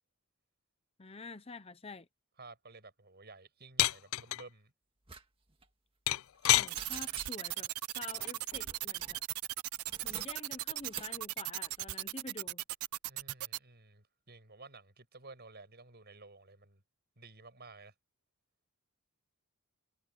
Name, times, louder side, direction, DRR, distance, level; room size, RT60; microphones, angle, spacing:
voice 1, 1.0-2.1 6.5-9.2 10.0-12.6, left 3 dB, 25° left, 0.8 m, -48 dB
voice 2, 2.4-4.7 13.1-16.8 17.2-17.9, right 3 dB, 45° right, 7.5 m, -53 dB
sound 1, 3.8-4.4 6.1-6.7 8.2-8.5, left 15 dB, 70° left, 0.4 m, -27 dB
sound 2, 5.1-5.2 5.5-5.7 6.1-6.5 6.8-7.7 8.5-9.2 9.8-11.2 11.7-12.0, right 5 dB, 25° right, 1.8 m, -48 dB
sound 3, 6.7-13.6, right 17 dB, 80° right, 0.5 m, -37 dB
head